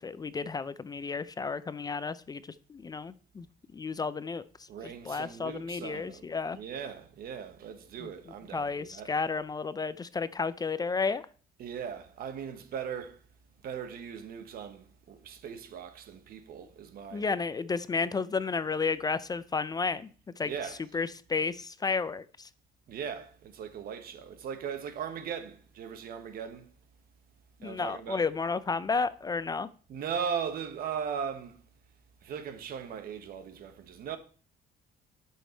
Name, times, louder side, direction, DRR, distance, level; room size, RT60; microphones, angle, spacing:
voice 1, 0.0-2.4 2.7-3.5 3.7-4.4 4.8-6.6 8.0-8.1 8.5-11.2 17.1-20.1 20.4-20.5 20.9-22.5 27.6-29.7, left 4 dB, 25° left, 0.5 m, -32 dB
voice 2, 4.7-6.3 6.5-9.1 11.6-13.2 13.6-17.3 20.4-20.8 22.9-26.7 27.6-28.2 29.9-31.6 32.2-34.2, right 7 dB, 60° right, 1.3 m, -38 dB
11.0 x 6.5 x 4.5 m
cardioid pair, 110°, 17 cm